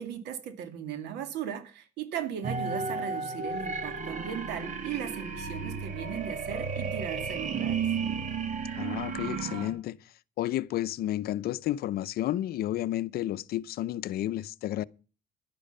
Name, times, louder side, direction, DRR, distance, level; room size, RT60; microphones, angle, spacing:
voice 1, 0.0-7.8, right 8 dB, 85° right, 2.4 m, -37 dB
sound 1, 2.4-9.7, right 5 dB, 45° right, 2.7 m, -33 dB
voice 2, 8.8-10.0 10.4-14.8, left 13 dB, 65° left, 0.6 m, -31 dB
11.5 x 10.5 x 5.5 m
cardioid pair, 110°, 17 cm